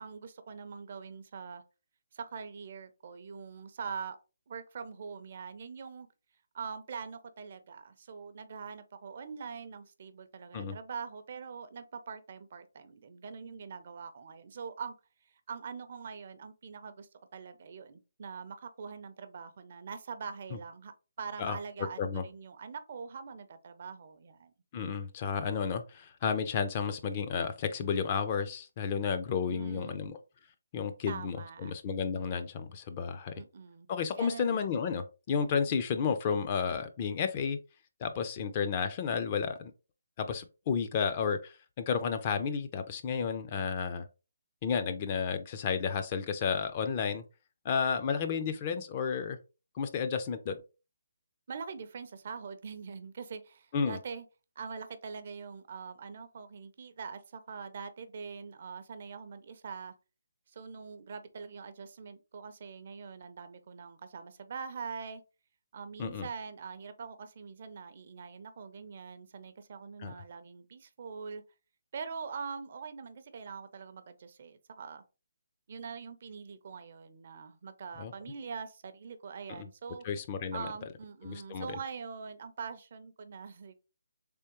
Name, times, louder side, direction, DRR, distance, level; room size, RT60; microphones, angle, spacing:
voice 1, 0.0-1.6 2.1-4.2 4.5-6.1 6.5-14.9 15.5-20.9 21.2-24.5 29.3-30.1 31.1-31.7 33.3-33.9 34.2-34.7 51.5-54.2 54.6-59.9 60.5-65.2 65.7-71.4 71.9-75.0 75.7-80.0 80.5-83.8, right 5 dB, 45° right, 0.4 m, -43 dB
voice 2, 24.7-30.2 30.7-33.3 33.9-37.6 38.0-39.7 40.2-44.1 44.6-47.2 47.6-49.4 49.8-50.6 53.7-54.0 66.0-66.2 70.0-70.1 78.0-78.1 79.6-79.7 80.0-80.7 81.2-81.8, left 6 dB, 30° left, 0.4 m, -32 dB
3.4 x 3.1 x 2.9 m
hypercardioid pair, 165°, 0 cm